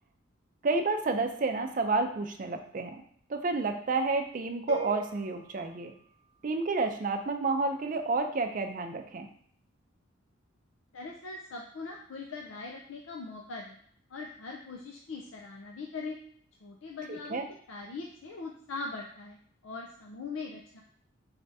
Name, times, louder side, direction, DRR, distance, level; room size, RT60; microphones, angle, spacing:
voice 1, 0.6-3.0 3.3-5.9 6.4-9.3 17.1-17.5, right 3 dB, 40° right, 5 dB, 0.4 m, -30 dB
sound 1, 4.7-6.7, right 1 dB, 55° left, 1.0 m, -43 dB
voice 2, 10.9-13.8 14.1-16.2 16.6-19.4 19.6-20.8, left 3 dB, 75° left, 0 dB, 0.5 m, -41 dB
4.9 x 3.4 x 2.7 m, 0.64 s
head